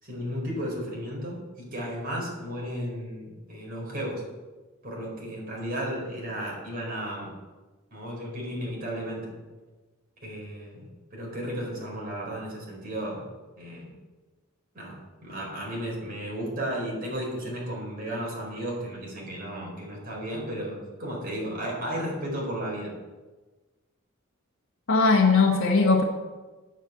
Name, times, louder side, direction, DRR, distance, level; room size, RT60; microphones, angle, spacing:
voice 1, 0.0-4.2 4.8-7.3 7.9-9.3 10.2-13.3 13.6-13.9 14.7-22.9, equal, 45° right, -3 dB, 4.6 m, -34 dB
voice 2, 24.9-26.0, left 4 dB, 70° left, -3 dB, 1.2 m, -19 dB
8.9 x 8.0 x 8.1 m, 1.2 s
head